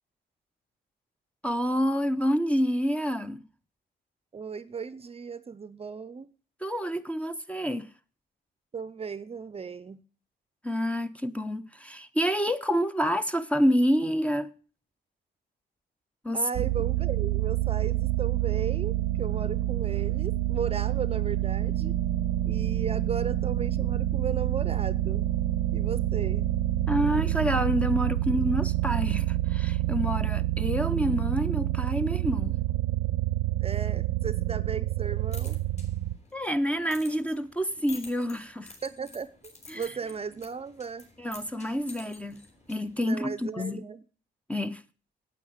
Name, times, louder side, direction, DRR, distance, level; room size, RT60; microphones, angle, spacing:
voice 1, 1.4-3.4 6.6-7.9 10.6-14.5 16.2-16.5 26.9-32.6 36.3-38.7 39.7-39.9 41.2-43.8 44.5-44.8, equal, 5° left, 0.7 m, -28 dB
voice 2, 4.3-6.3 8.7-10.0 16.3-22.0 22.5-25.3 25.7-26.5 33.6-35.6 38.8-39.3 39.7-41.1 43.0-44.0, right 6 dB, 30° right, 0.7 m, -36 dB
sound 1, 16.5-36.2, right 14 dB, 90° right, 0.7 m, -27 dB
sound 2, 35.0-43.1, left 3 dB, 35° left, 4.3 m, -50 dB
9.1 x 8.5 x 8.1 m
cardioid pair, 90°, 20 cm